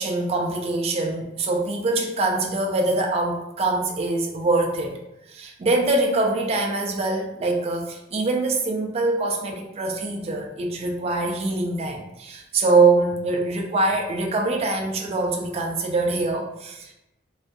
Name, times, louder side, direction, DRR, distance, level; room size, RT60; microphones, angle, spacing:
voice 1, 0.0-5.0 5.3-16.9, right 3 dB, 30° right, 1 dB, 0.3 m, -24 dB
2.5 x 2.4 x 2.2 m, 0.90 s
head